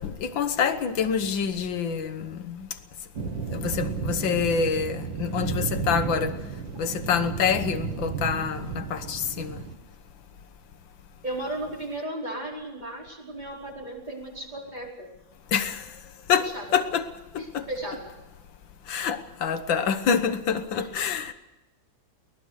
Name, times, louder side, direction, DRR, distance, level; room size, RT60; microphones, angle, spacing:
voice 1, 0.0-2.7 3.5-6.4 6.8-9.6 15.5-15.8 16.3-17.7 18.9-21.3, left 6 dB, 85° left, 1.9 m, -27 dB
sound 1, 3.2-9.8, right 6 dB, 90° right, 2.6 m, -33 dB
voice 2, 11.2-15.1 16.5-16.7 17.3-18.1 20.7-20.9, right 1 dB, 20° right, 5.0 m, -35 dB
23.5 x 18.5 x 6.5 m
omnidirectional pair, 2.0 m